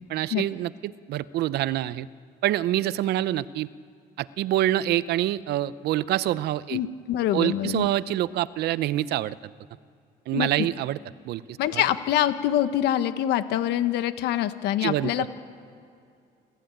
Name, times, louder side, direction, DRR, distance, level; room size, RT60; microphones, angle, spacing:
voice 1, 0.1-2.1 2.4-3.7 4.2-6.8 7.3-9.4 10.3-11.0 11.2-11.4 11.7-11.8 14.8-15.3, right 14 dB, 75° right, 17 dB, 0.7 m, -26 dB
voice 2, 6.7-7.9 10.3-10.5 11.6-15.3, left 12 dB, 85° left, 11 dB, 1.2 m, -25 dB
27.5 x 14.5 x 9.0 m, 2.4 s
cardioid pair, 110°, 17 cm